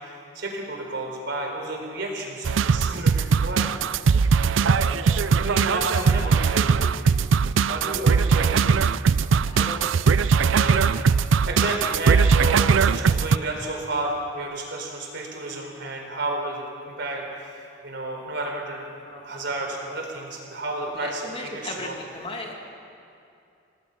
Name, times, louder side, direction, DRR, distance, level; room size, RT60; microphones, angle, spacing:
voice 1, 0.0-3.8 4.6-7.0 7.7-8.7 10.5-10.9 11.4-18.9 19.2-22.0, right 2 dB, 65° right, 1 dB, 4.2 m, -32 dB
sound 1, 2.4-13.4, right 5 dB, 90° right, 0.4 m, -20 dB
voice 2, 9.4-9.9 19.0-19.4 21.0-22.5, left 2 dB, 30° left, 1 dB, 2.2 m, -36 dB
28.0 x 19.0 x 5.8 m, 2.6 s
head